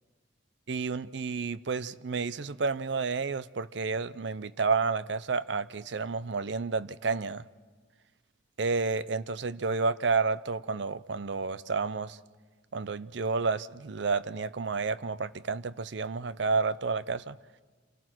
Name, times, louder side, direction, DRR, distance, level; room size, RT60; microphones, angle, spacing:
voice 1, 0.7-7.4 8.6-12.2 12.7-17.4, right 4 dB, 65° right, 16 dB, 0.6 m, -30 dB
28.0 x 17.0 x 6.1 m, 1.4 s
head